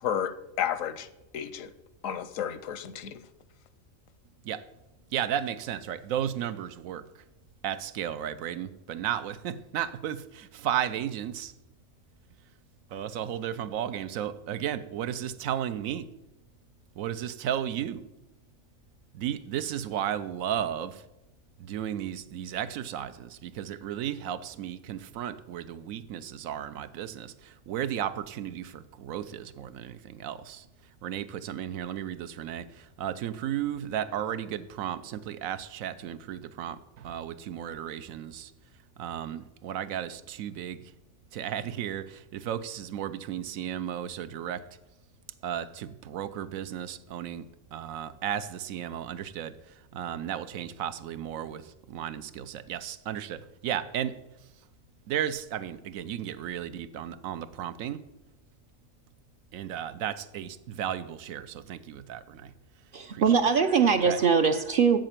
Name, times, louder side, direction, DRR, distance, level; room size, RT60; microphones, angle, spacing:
voice 1, 0.0-1.1 1.3-1.7 2.0-3.2, left 9 dB, 80° left, 14 dB, 1.1 m, -32 dB
voice 2, 5.1-7.2 7.6-11.5 12.9-16.1 17.0-18.0 19.1-21.1 21.6-30.7 31.0-38.5 39.0-40.9 41.3-44.7 45.4-54.2 55.1-58.0 59.5-62.5 63.1-63.2 64.0-64.2, right 10 dB, 85° right, 13 dB, 1.0 m, -34 dB
voice 3, 62.9-65.0, right 6 dB, 60° right, 9 dB, 0.5 m, -22 dB
7.7 x 7.6 x 7.3 m, 0.95 s
omnidirectional pair, 1.4 m